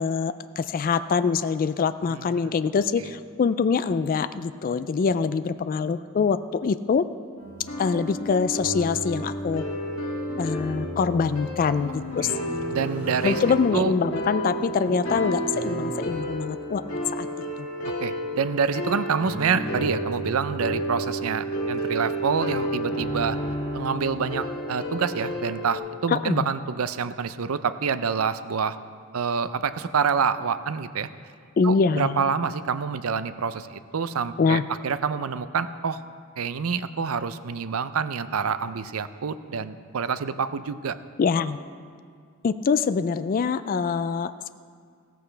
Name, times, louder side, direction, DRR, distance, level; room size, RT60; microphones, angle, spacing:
voice 1, 0.0-7.0 7.8-9.7 10.4-12.6 13.2-16.8 17.1-17.3 17.6-17.7 26.1-26.5 31.6-32.2 34.4-34.7 41.2-41.6 42.4-44.5, left 5 dB, 40° left, 12 dB, 0.3 m, -24 dB
voice 2, 2.1-2.5 12.2-12.4 12.7-13.4 13.7-13.9 18.0-23.4 23.7-28.8 29.1-31.1 31.6-36.0 36.4-41.0, right 6 dB, 85° right, 13 dB, 0.5 m, -27 dB
Motorcycle, 7.3-16.3 17.0-17.6, equal, 10° right, 3.0 m, -47 dB
sound 1, 7.4-25.8, equal, 80° left, 2.3 m, -31 dB
16.5 x 14.0 x 3.3 m, 2.2 s
head